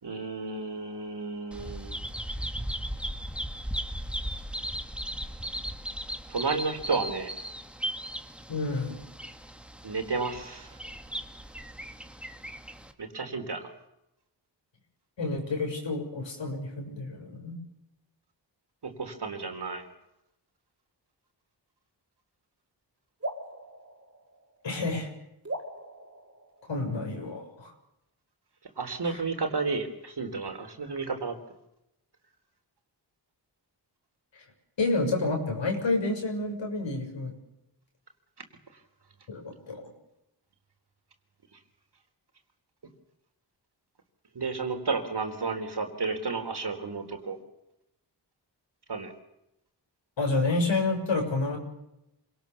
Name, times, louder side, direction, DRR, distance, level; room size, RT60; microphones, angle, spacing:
voice 1, 0.0-2.0 6.3-7.3 7.8-7.9 9.8-10.8 13.0-13.7 18.8-19.9 28.8-31.4 44.3-47.4 48.9-49.1, right 4 dB, 65° right, 6 dB, 4.0 m, -32 dB
Bird vocalization bird call bird song, 1.5-12.9, equal, ahead, 1.9 m, -37 dB
voice 2, 8.5-9.0 15.2-17.6 24.6-25.1 26.7-27.7 29.0-29.1 34.3-34.4 34.8-37.3 39.3-39.8 50.2-51.6, left 3 dB, 80° left, 2 dB, 6.6 m, -29 dB
sound 1, 23.2-24.9 25.4-27.1, right 1 dB, 30° right, 4.5 m, -40 dB
26.5 x 19.0 x 7.2 m, 0.85 s
wide cardioid pair, 75°, 44 cm